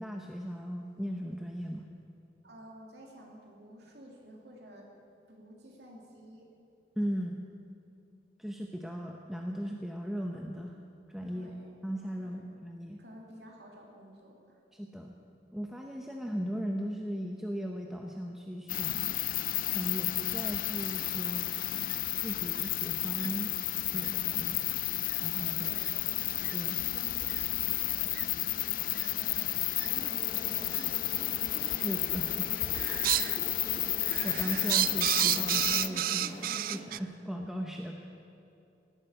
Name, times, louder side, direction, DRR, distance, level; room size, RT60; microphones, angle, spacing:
voice 1, 0.0-1.9 7.0-7.4 8.4-10.8 11.1-11.5 11.8-13.0 14.7-15.2 15.5-19.2 19.7-21.5 22.2-23.5 23.9-24.7 25.2-25.7 26.5-26.8 31.4-32.5 32.8-33.1 34.2-38.0, equal, ahead, 1 dB, 0.7 m, -37 dB
voice 2, 2.4-4.9 5.3-6.5 11.3-11.7 12.2-12.4 13.0-14.6 25.5-26.2 26.7-28.1 28.4-31.4 32.1-32.2, equal, 70° right, -1 dB, 2.8 m, -52 dB
sound 1, 18.7-35.9, left 16 dB, 50° left, 0.4 m, -32 dB
sound 2, 20.9-21.0 21.8-22.0 22.6-22.7 23.2-23.3 24.0-24.1 25.1-25.2 25.8-25.9 26.4-26.5 27.3-27.4 28.1-28.3 29.0-29.1 29.8-29.9 30.7-30.8 31.8-32.1 32.4-33.4 33.8-37.0, right 13 dB, 50° right, 0.3 m, -31 dB
sound 3, 29.8-36.8, left 1 dB, 30° left, 2.2 m, -45 dB
17.5 x 9.7 x 8.0 m, 2.6 s
head